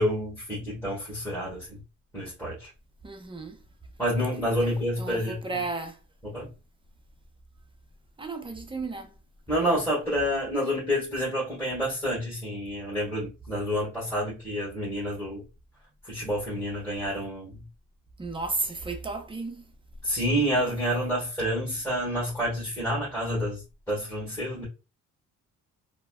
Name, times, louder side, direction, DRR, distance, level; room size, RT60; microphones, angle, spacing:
voice 1, 0.0-1.8 2.1-2.7 4.0-5.6 6.3-6.5 9.5-15.4 16.0-17.6 20.0-23.6 23.9-24.6, equal, 10° left, 1.6 m, -28 dB
voice 2, 3.0-3.6 4.6-6.0 8.2-9.1 18.2-19.7, right 3 dB, 15° right, 0.6 m, -34 dB
3.2 x 2.1 x 2.2 m
cardioid pair, 90°, 30 cm